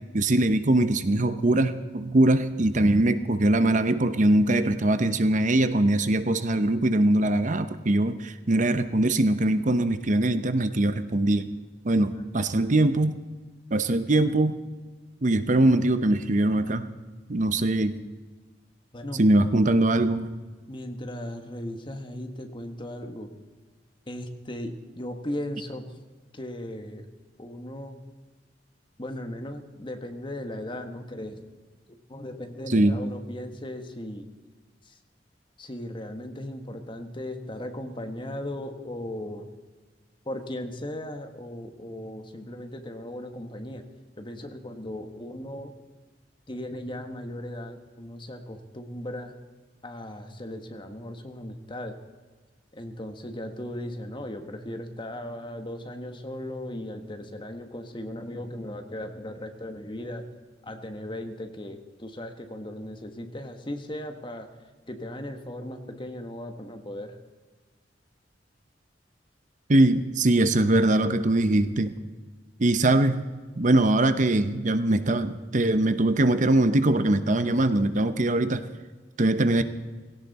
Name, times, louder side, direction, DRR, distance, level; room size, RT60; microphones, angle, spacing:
voice 1, 0.1-11.5 11.8-13.2 13.7-14.6 15.2-16.9 17.3-18.0 19.1-20.3 32.7-33.0 69.7-71.9 72.6-73.2 73.6-78.6 79.2-79.6, right 1 dB, 45° right, 10 dB, 0.8 m, -22 dB
voice 2, 18.9-19.3 20.7-23.3 24.1-25.9 26.3-27.1 27.4-28.0 29.0-31.4 31.9-34.3 34.8-35.0 35.6-39.5 40.2-43.8 44.2-45.7 46.5-49.4 49.8-52.0 52.7-60.3 60.6-64.5 64.9-67.2, left 1 dB, 30° left, 6 dB, 1.5 m, -37 dB
19.0 x 17.0 x 4.2 m, 1.3 s
head